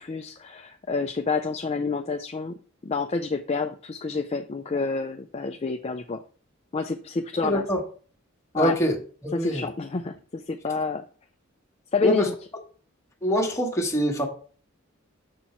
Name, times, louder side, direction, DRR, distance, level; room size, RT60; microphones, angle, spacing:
voice 1, 0.0-2.6 2.8-6.2 6.7-7.6 8.5-8.8 9.3-11.0 11.9-12.2, left 4 dB, 30° left, 0.4 m, -28 dB
voice 2, 7.4-7.8 8.5-9.0 9.2-9.7 12.0-12.3 13.2-14.2, equal, 15° left, 1.4 m, -24 dB
7.0 x 4.5 x 4.3 m
head